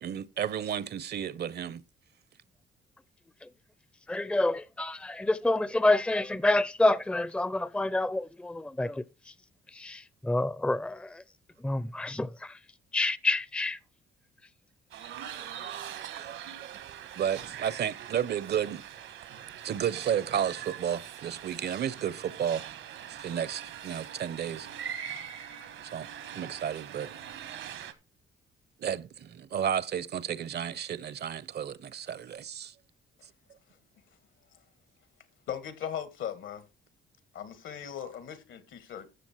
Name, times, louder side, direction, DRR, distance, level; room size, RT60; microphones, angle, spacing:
voice 1, 0.0-1.8 15.4-18.8 19.6-22.6 23.1-24.7 25.9-27.1 28.8-32.7, right 9 dB, 55° right, 0.8 m, -33 dB
voice 2, 4.1-8.9 9.8-10.0 10.3-10.9 11.6-12.3 12.9-13.8, left 2 dB, 5° left, 0.6 m, -27 dB
sound 1, 14.9-27.9, right 9 dB, 80° right, 1.7 m, -42 dB
voice 3, 35.5-36.6 37.3-39.1, left 9 dB, 75° left, 2.2 m, -38 dB
13.0 x 7.2 x 4.6 m
cardioid pair, 90°, 20 cm